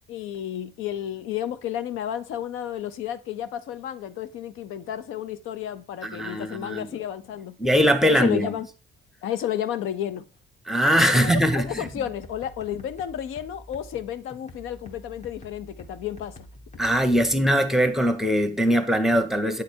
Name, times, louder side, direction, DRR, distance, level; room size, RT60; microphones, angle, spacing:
voice 1, 0.1-7.6 8.0-8.7 9.2-10.2 11.1-16.5, left 10 dB, 80° left, 0.5 m, -32 dB
voice 2, 6.0-7.0 7.6-8.5 10.7-11.9 16.8-19.6, equal, ahead, 0.8 m, -21 dB
sound 1, 11.5-17.5, left 1 dB, 35° left, 1.2 m, -47 dB
8.4 x 3.3 x 4.4 m
cardioid pair, 105°, 21 cm